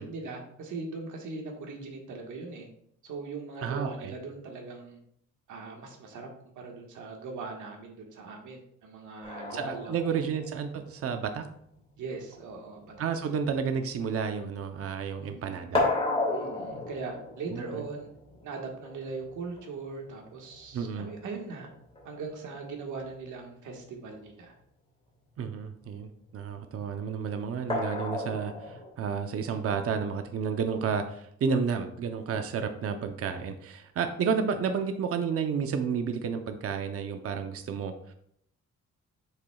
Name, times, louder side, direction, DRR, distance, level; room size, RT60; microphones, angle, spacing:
voice 1, 0.0-2.7 3.0-5.0 5.5-6.3 6.5-9.9 12.0-12.9 13.3-13.4 15.1-15.6 16.3-18.1 18.4-21.7 22.0-24.5, right 4 dB, 85° right, 1 dB, 1.6 m, -40 dB
voice 2, 3.6-4.1 9.5-11.5 13.0-15.9 17.5-17.8 20.7-21.1 25.4-38.1, right 6 dB, 50° right, 7 dB, 0.7 m, -31 dB
sound 1, 9.2-15.0 15.2-22.2 23.6-23.7 24.1-24.2 27.7-28.9, left 2 dB, 20° left, 2.2 m, -35 dB
8.1 x 7.1 x 2.3 m, 0.69 s
cardioid pair, 145°, 30 cm